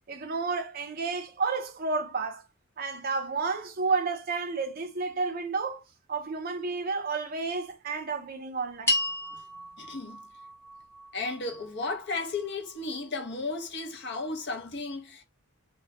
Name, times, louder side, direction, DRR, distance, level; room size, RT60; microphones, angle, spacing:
voice 1, 0.1-2.4 2.8-5.8 6.1-8.9, right 4 dB, 45° right, 0.5 m, -31 dB
sound 1, 8.9-13.3, left 2 dB, 10° left, 0.6 m, -35 dB
voice 2, 9.8-10.2 11.1-15.2, left 3 dB, 55° left, 0.6 m, -34 dB
2.2 x 2.1 x 2.8 m
head